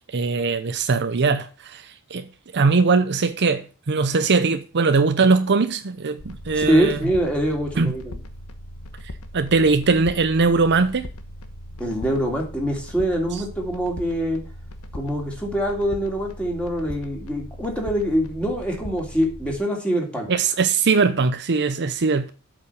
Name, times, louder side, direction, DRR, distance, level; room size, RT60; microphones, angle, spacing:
voice 1, 0.1-7.1 7.8-7.9 9.3-11.1 13.3-13.4 20.3-22.3, right 4 dB, 50° right, 0.7 m, -21 dB
sound 1, 6.2-19.6, left 1 dB, 75° left, 1.1 m, -39 dB
voice 2, 6.5-8.2 11.8-14.4 14.9-20.3, equal, 5° left, 2.9 m, -24 dB
8.3 x 5.1 x 6.9 m
head